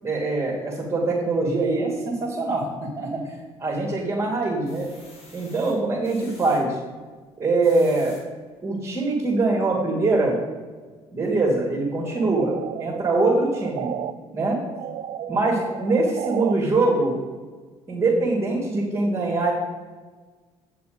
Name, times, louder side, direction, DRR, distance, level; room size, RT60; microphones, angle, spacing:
voice 1, 0.0-3.2 3.6-4.9 5.3-6.8 7.4-8.2 8.6-10.4 11.1-12.5 12.8-13.9 14.3-14.6 15.3-17.2 17.9-19.5, right 2 dB, 20° right, -4 dB, 2.7 m, -23 dB
sound 1, 3.3-4.0 4.4-6.6 7.4-8.2 8.8-8.9 9.3-9.4, left 2 dB, 55° left, 3.4 m, -50 dB
sound 2, 12.0-14.1 14.5-16.5, right 11 dB, 60° right, 0.5 m, -34 dB
9.1 x 6.9 x 5.2 m, 1.4 s
supercardioid pair, 80°, 12 cm